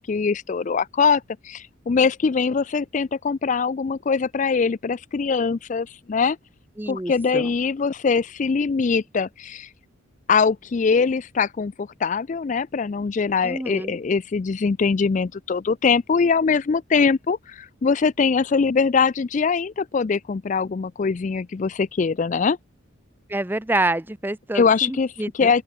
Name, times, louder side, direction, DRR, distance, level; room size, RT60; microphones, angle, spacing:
voice 1, 0.0-6.4 6.9-9.7 10.3-22.6 24.5-25.6, left 5 dB, 35° left, 0.3 m, -22 dB
voice 2, 6.8-7.5 13.4-14.0 23.3-25.5, right 2 dB, 10° right, 0.6 m, -27 dB
open air
head